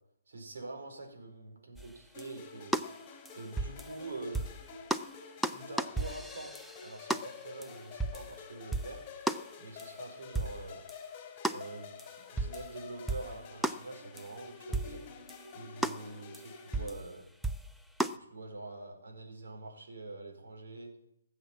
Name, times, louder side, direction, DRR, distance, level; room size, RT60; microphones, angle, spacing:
voice 1, 0.3-2.8 3.4-4.5 5.5-6.5 6.8-9.3 9.6-10.8 11.5-15.0 15.5-17.3 18.1-20.9, right 2 dB, 65° right, 1 dB, 4.8 m, -45 dB
sound 1, 1.8-2.4 2.7-4.1 4.3-4.6 4.9-8.4 8.7-9.0 9.3-9.5 9.8-10.0 10.4-11.0 11.4-11.7 12.0-12.7 13.1-13.4 13.6-14.4 14.7-15.0 15.3-15.5 15.8-17.1 17.4-18.2, right 1 dB, ahead, 0.5 m, -35 dB
sound 2, 2.1-16.9, left 6 dB, 30° left, 2.6 m, -49 dB
17.0 x 7.3 x 7.4 m, 0.81 s
figure-of-eight pair, 135°, 0 cm